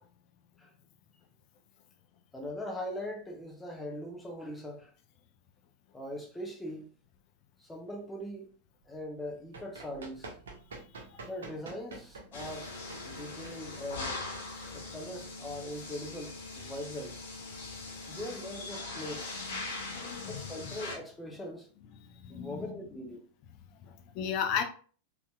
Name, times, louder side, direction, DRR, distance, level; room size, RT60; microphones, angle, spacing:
voice 1, 2.3-4.9 5.9-6.9 7.6-8.5 8.9-10.3 11.2-12.7 13.0-14.1 14.7-17.2 18.1-19.4 20.3-21.7 22.3-23.2, left 1 dB, 10° left, 0.8 m, -41 dB
Run, 9.2-15.6, right 3 dB, 65° right, 0.7 m, -48 dB
sound 1, 12.3-21.0, left 3 dB, 60° left, 1.0 m, -41 dB
voice 2, 19.5-20.5 22.0-22.7 23.9-24.6, left 7 dB, 40° left, 0.6 m, -36 dB
3.9 x 2.9 x 2.3 m
figure-of-eight pair, 90°, 0 cm